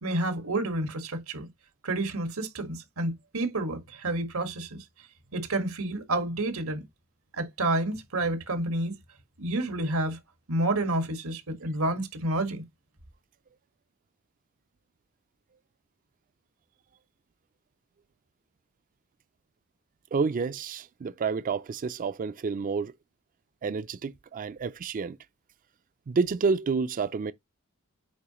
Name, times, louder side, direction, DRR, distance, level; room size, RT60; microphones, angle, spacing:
voice 1, 0.0-1.5 1.8-4.8 5.3-6.8 7.3-8.9 9.4-10.2 10.5-12.6, right 2 dB, 90° right, 1.7 m, -29 dB
voice 2, 20.1-22.9 23.6-25.2 26.1-27.3, right 5 dB, 40° right, 0.4 m, -29 dB
8.4 x 4.8 x 3.0 m
head